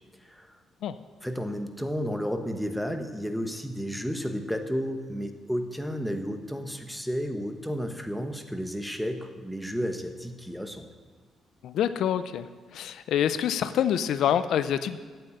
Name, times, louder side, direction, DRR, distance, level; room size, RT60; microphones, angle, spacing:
voice 1, 1.2-10.9, equal, ahead, 6 dB, 1.1 m, -32 dB
voice 2, 11.6-12.5 12.7-15.0, left 9 dB, 75° left, 12 dB, 0.4 m, -26 dB
8.5 x 7.8 x 8.9 m, 1.4 s
cardioid pair, 90°, 0 cm